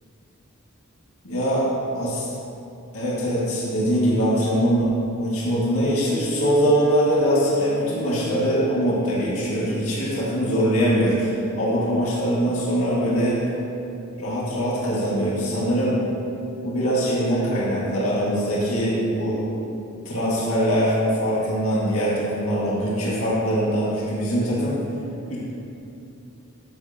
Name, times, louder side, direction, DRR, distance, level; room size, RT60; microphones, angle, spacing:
voice 1, 1.2-1.7 2.0-2.3 2.9-13.4 14.2-16.0 16.6-19.5 20.1-24.8 25.3-25.4, equal, 75° left, -7 dB, 2.1 m, -22 dB
12.0 x 7.6 x 3.0 m, 2.7 s
head